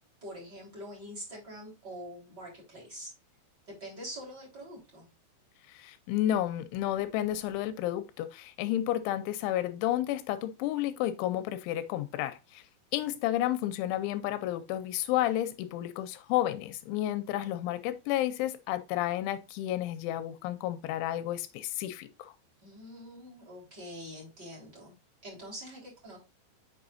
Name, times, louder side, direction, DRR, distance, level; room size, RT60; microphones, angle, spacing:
voice 1, 0.2-3.1 3.7-5.1 22.6-24.9 25.2-26.2, equal, 25° right, 3.9 m, -45 dB
voice 2, 5.7-12.6 12.9-22.3, left 13 dB, 85° left, 3.1 m, -31 dB
7.6 x 5.9 x 2.6 m
omnidirectional pair, 5.4 m